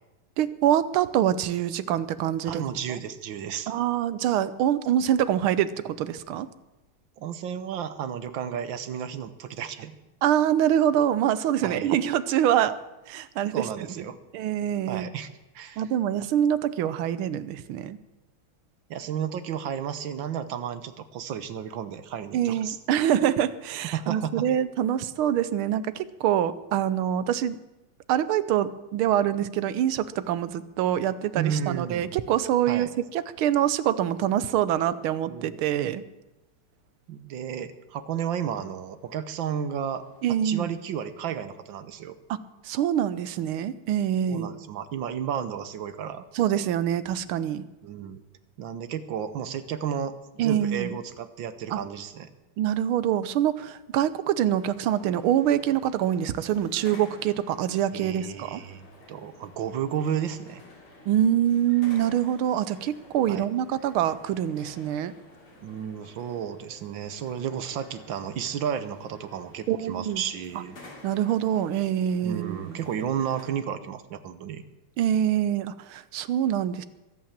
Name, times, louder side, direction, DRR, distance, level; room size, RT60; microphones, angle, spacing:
voice 1, 0.4-2.6 3.7-6.5 10.2-12.8 13.1-14.0 14.3-15.1 15.8-18.0 22.3-27.6 28.1-36.0 40.2-40.7 42.6-44.5 46.3-47.6 50.4-50.9 51.7-51.8 52.6-58.6 61.1-65.1 69.7-70.2 71.0-72.8 75.0-76.8, right 10 dB, 90° right, 15 dB, 1.6 m, -25 dB
voice 2, 2.5-3.7 7.2-10.0 11.6-11.9 13.5-14.2 14.9-15.3 15.6-15.8 18.9-22.8 23.9-24.5 31.4-32.1 32.7-32.9 35.2-35.6 37.1-40.0 40.4-42.2 44.3-46.3 47.8-48.2 48.6-52.3 57.9-60.6 63.3-63.5 65.6-70.8 72.2-74.6, right 8 dB, 70° right, 12 dB, 1.7 m, -32 dB
sound 1, 54.5-73.4, left 2 dB, 80° left, 4.1 m, -51 dB
22.5 x 8.6 x 7.4 m, 1.0 s
omnidirectional pair, 2.3 m